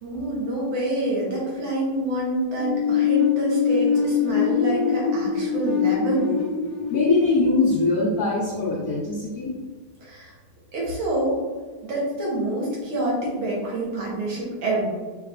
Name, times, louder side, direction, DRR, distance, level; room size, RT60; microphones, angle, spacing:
voice 1, 0.0-6.4 10.0-10.3 10.7-11.4 11.8-14.9, right 1 dB, 70° right, -4 dB, 1.9 m, -27 dB
sound 1, 2.6-8.3, left 7 dB, 70° left, 1.1 m, -23 dB
voice 2, 6.9-9.5, left 3 dB, 90° left, -4 dB, 0.8 m, -22 dB
5.5 x 3.0 x 2.4 m, 1.4 s
omnidirectional pair, 2.4 m